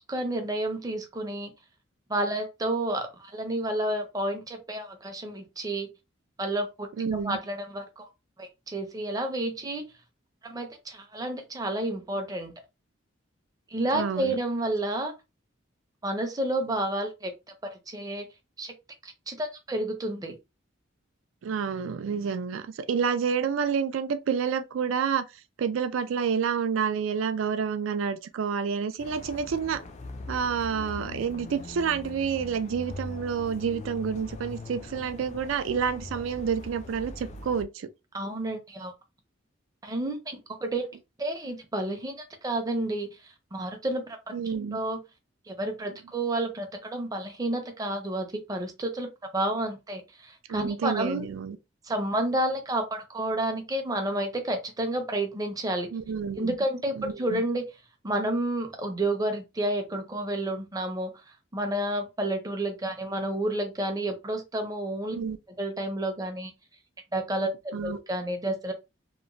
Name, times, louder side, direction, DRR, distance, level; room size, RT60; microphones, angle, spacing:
voice 1, 0.1-1.5 2.1-5.9 6.4-6.9 7.2-8.0 8.4-9.8 10.4-12.5 13.7-15.1 16.0-17.3 17.9-18.2 18.6-18.7 19.0-20.4 38.1-38.9 39.8-40.9 41.2-43.1 43.5-45.0 45.5-49.1 49.3-51.3 51.8-55.9 56.4-57.7 58.0-61.1 61.5-65.2 65.6-66.5 67.1-68.7, right 1 dB, 20° right, 0.5 m, -30 dB
voice 2, 7.0-7.4 13.9-14.4 21.4-25.3 25.6-29.8 30.3-37.9 44.3-44.8 50.5-51.6 55.9-56.5 57.0-57.4 65.1-65.4 67.7-68.0, right 6 dB, 85° right, 0.4 m, -29 dB
sound 1, 29.0-37.6, left 2 dB, 35° left, 0.3 m, -41 dB
2.9 x 2.1 x 2.5 m
head